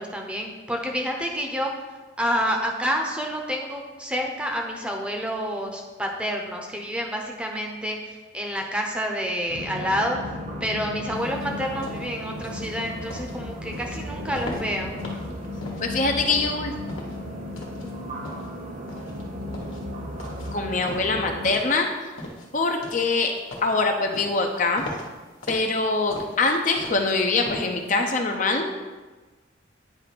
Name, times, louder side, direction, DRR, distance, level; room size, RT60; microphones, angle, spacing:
voice 1, 0.0-1.7 2.2-10.2 10.6-15.0, equal, 5° right, 1 dB, 0.7 m, -28 dB
sound 1, 9.5-21.5, left 1 dB, 35° right, 0.9 m, -35 dB
sound 2, 11.2-28.1, left 1 dB, 85° left, 1.3 m, -40 dB
voice 2, 15.8-16.7 20.5-21.9 22.5-23.3 23.6-24.8 25.5-28.7, left 3 dB, 40° left, 4 dB, 0.6 m, -23 dB
9.1 x 3.3 x 5.9 m, 1.3 s
head